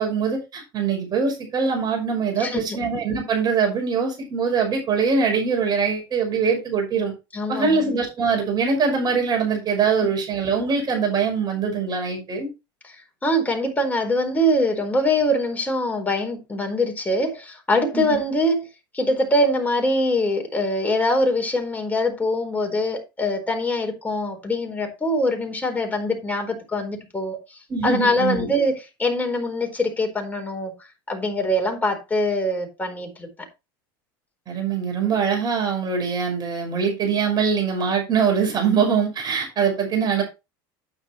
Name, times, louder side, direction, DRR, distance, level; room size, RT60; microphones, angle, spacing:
voice 1, 0.0-7.1 7.5-12.5 17.9-18.2 27.7-28.5 34.5-40.2, right 5 dB, 35° right, 5.8 m, -23 dB
voice 2, 2.4-2.8 7.3-7.8 12.8-18.7 18.9-30.7 31.1-33.3, left 1 dB, 15° left, 4.5 m, -23 dB
9.9 x 9.5 x 3.2 m
supercardioid pair, 100°, 12 cm